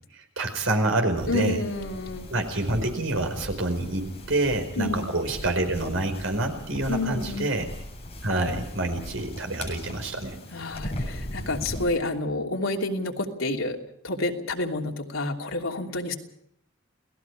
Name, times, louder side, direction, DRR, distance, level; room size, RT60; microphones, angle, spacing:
voice 1, 0.1-1.6 2.3-7.7 8.2-10.4, right 2 dB, 70° right, 6 dB, 4.9 m, -27 dB
sound 1, 1.1-11.9, left 1 dB, 30° left, 7.6 m, -38 dB
voice 2, 1.3-2.3 4.8-5.1 6.9-7.5 10.5-13.8 14.0-16.1, left 2 dB, 85° left, 1 dB, 3.0 m, -29 dB
29.5 x 18.5 x 4.9 m, 0.76 s
head